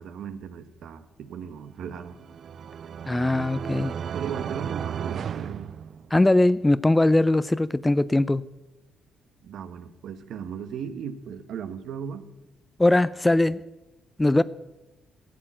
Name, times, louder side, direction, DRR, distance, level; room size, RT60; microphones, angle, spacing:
voice 1, 0.0-2.2 4.1-5.7 9.4-12.2, right 7 dB, 70° right, 1.0 m, -37 dB
sound 1, 1.9-6.5, right 8 dB, 55° right, 0.4 m, -34 dB
voice 2, 3.1-3.9 6.1-8.4 12.8-13.6 14.2-14.4, left 2 dB, 15° left, 0.4 m, -20 dB
13.5 x 7.6 x 8.8 m
cardioid pair, 90°, 0 cm